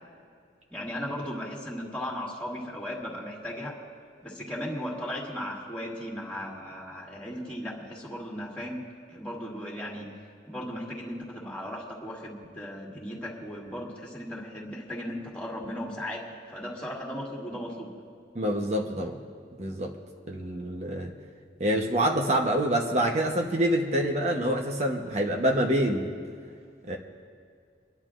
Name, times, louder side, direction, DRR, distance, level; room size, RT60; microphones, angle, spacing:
voice 1, 0.7-3.8 4.2-8.8 9.1-10.1 10.4-17.9, equal, 5° left, -5 dB, 2.1 m, -36 dB
voice 2, 18.3-19.2 19.6-19.9 20.3-21.1 21.6-26.1 26.9-27.0, right 1 dB, 40° right, 2 dB, 0.9 m, -26 dB
29.5 x 11.5 x 2.5 m, 2.1 s
head